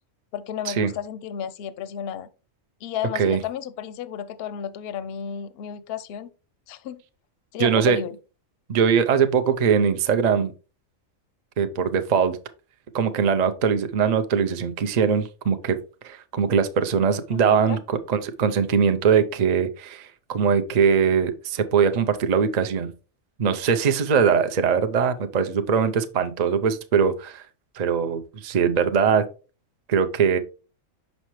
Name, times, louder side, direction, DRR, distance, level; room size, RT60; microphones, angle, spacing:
voice 1, 0.3-2.3 2.8-6.3 6.7-7.0 7.5-8.2 17.3-17.8, left 9 dB, 60° left, 0.7 m, -32 dB
voice 2, 7.6-8.0 8.7-10.5 11.6-12.4 12.9-15.8 16.0-22.9 23.4-27.4 27.8-29.3 29.9-30.4, right 6 dB, 50° right, 0.5 m, -21 dB
6.3 x 5.3 x 3.1 m
omnidirectional pair, 1.4 m